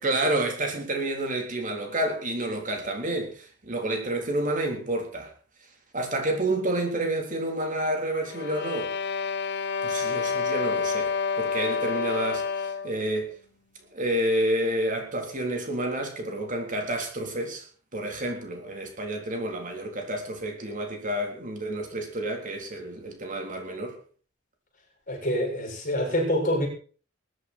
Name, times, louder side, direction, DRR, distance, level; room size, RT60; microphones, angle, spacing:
voice 1, 0.0-5.3 5.9-8.9 9.8-13.3 13.9-17.6 17.9-24.0, right 1 dB, 40° right, 3 dB, 3.8 m, -29 dB
sound 1, 8.2-13.0, left 5 dB, 60° left, 1.1 m, -28 dB
voice 2, 25.1-26.7, equal, 40° left, 1 dB, 6.9 m, -26 dB
21.5 x 11.0 x 4.5 m, 0.42 s
head